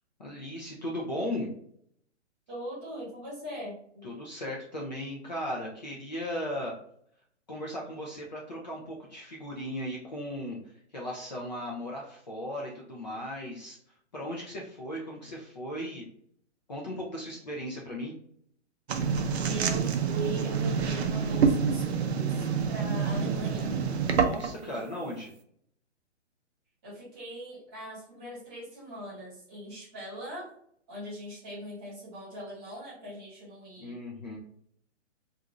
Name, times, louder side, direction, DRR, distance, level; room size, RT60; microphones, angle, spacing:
voice 1, 0.2-1.5 4.0-6.8 7.5-10.6 10.9-13.8 14.1-16.0 16.7-18.1 24.0-25.3 33.8-34.4, left 1 dB, 40° left, -3 dB, 0.4 m, -37 dB
voice 2, 2.5-4.1 19.4-23.7 24.6-24.8 26.8-30.5 30.9-34.0, right 1 dB, 20° right, -7 dB, 1.1 m, -41 dB
sound 1, 18.9-24.6, right 6 dB, 60° right, 0.5 m, -27 dB
2.5 x 2.5 x 2.9 m, 0.65 s
hypercardioid pair, 170°, 36 cm